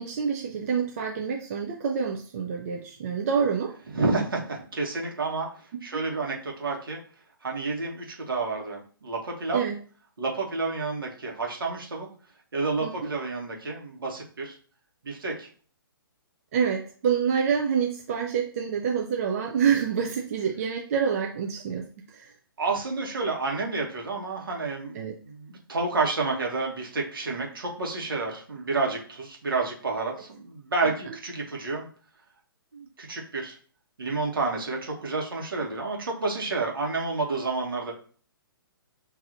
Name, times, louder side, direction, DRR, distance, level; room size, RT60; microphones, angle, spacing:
voice 1, 0.0-3.7 5.7-5.8 9.5-9.8 12.8-13.1 16.5-22.3 24.9-25.1, right 7 dB, 40° right, 1 dB, 0.5 m, -27 dB
voice 2, 3.9-7.0 7.4-9.6 10.2-12.1 12.5-14.6 15.0-15.5 22.6-31.9 32.7-33.6 34.0-37.9, right 3 dB, 65° right, 0 dB, 1.2 m, -30 dB
6.7 x 2.7 x 2.5 m, 0.43 s
figure-of-eight pair, 130°, 13 cm